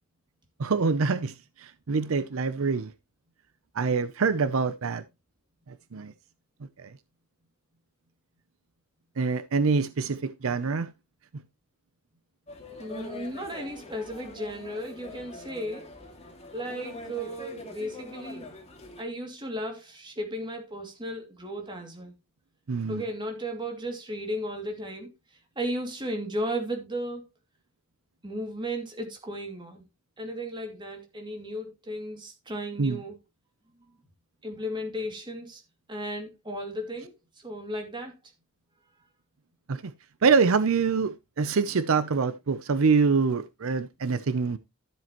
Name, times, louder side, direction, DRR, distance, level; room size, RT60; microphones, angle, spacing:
voice 1, 0.6-2.9 3.7-5.0 5.7-6.1 6.8-6.9 9.2-10.9 11.3-11.4 22.7-23.0 32.8-33.0 39.7-39.9 40.2-44.6, right 5 dB, 75° right, 0.6 m, -25 dB
sound 1, 12.5-19.0, left 2 dB, 30° left, 2.2 m, -43 dB
voice 2, 12.8-15.9 16.5-18.5 19.0-22.1 22.9-27.2 28.2-29.9 30.2-33.1 33.7-34.0 34.4-35.6 35.9-38.1, equal, 20° right, 2.5 m, -35 dB
13.0 x 7.5 x 3.0 m
head